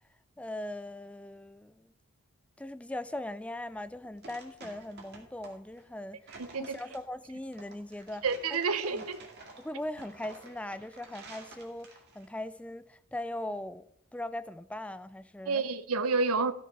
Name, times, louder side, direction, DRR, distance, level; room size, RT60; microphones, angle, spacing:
voice 1, 0.4-1.9 2.6-8.3 8.5-9.0 9.6-13.9 14.1-15.7, left 1 dB, 5° left, 0.3 m, -40 dB
sound 1, 3.7-12.3, right 3 dB, 45° right, 2.3 m, -51 dB
voice 2, 6.4-6.8 8.2-9.2 15.5-16.5, right 4 dB, 75° right, 0.7 m, -29 dB
13.5 x 6.6 x 4.7 m
head